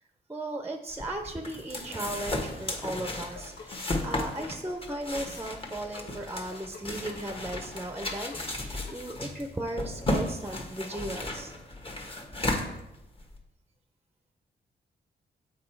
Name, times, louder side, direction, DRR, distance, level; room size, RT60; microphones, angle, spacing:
voice 1, 0.3-11.5, right 1 dB, 10° right, 6 dB, 0.6 m, -36 dB
sound 1, 0.9-13.4, left 1 dB, 30° left, 1.3 m, -34 dB
sound 2, 2.4-9.5, left 4 dB, 80° left, 1.3 m, -50 dB
7.5 x 4.7 x 4.6 m, 0.89 s
cardioid pair, 100°, 18 cm